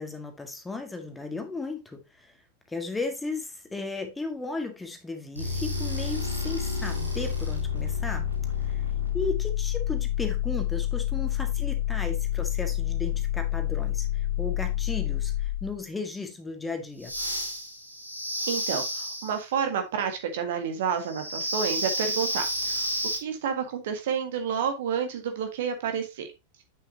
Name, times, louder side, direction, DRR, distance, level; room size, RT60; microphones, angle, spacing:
voice 1, 0.0-2.3 2.7-8.3 8.6-8.8 9.1-17.1, left 3 dB, 10° left, 1.7 m, -35 dB
sound 1, 5.3-15.8 17.0-19.4 21.0-23.2, left 6 dB, 90° right, 1.9 m, -29 dB
voice 2, 18.5-22.9 23.1-26.3, right 7 dB, 55° right, 1.6 m, -30 dB
8.4 x 6.8 x 2.8 m
figure-of-eight pair, 90°, 0 cm